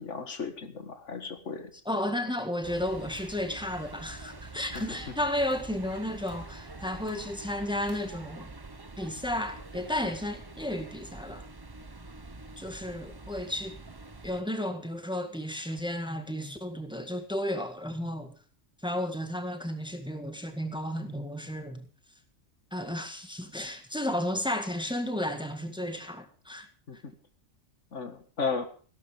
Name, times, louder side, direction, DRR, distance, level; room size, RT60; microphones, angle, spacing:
voice 1, 0.0-1.7 4.7-5.0 26.9-27.1 27.9-28.7, left 5 dB, 80° left, 2.1 m, -35 dB
voice 2, 1.9-8.5 9.0-11.4 12.6-13.8 14.2-18.3 18.8-21.9 22.7-26.7, left 1 dB, 5° right, 1.8 m, -33 dB
sound 1, 2.6-14.4, right 3 dB, 20° right, 0.9 m, -46 dB
16.5 x 12.0 x 5.1 m
omnidirectional pair, 1.2 m